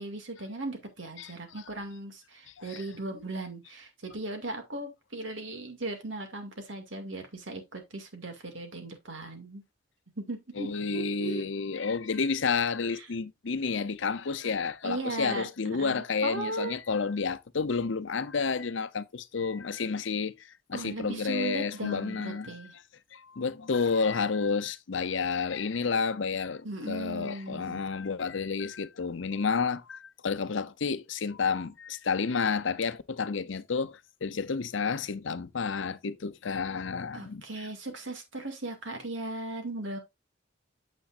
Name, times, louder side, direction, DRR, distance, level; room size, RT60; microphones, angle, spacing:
voice 1, 0.0-9.6 10.2-11.5 12.9-13.1 14.8-16.7 20.7-22.7 26.6-27.8 37.1-40.0, right 2 dB, 75° right, 2.2 m, -37 dB
voice 2, 10.6-22.6 23.1-37.4, left 5 dB, 75° left, 0.7 m, -30 dB
8.8 x 7.6 x 2.5 m
head